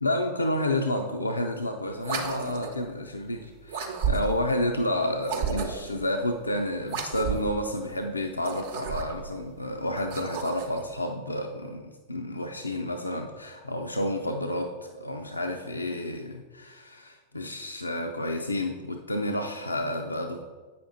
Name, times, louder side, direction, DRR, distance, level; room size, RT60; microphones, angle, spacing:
voice 1, 0.0-20.4, left 1 dB, 80° left, 4 dB, 0.4 m, -30 dB
sound 1, 2.0-2.8 3.7-4.5 5.2-6.0 6.8-7.6 8.3-9.3 9.9-10.8, right 5 dB, 55° right, 0.8 m, -32 dB
8.2 x 5.9 x 3.8 m, 1.4 s
figure-of-eight pair, 90°, 0 cm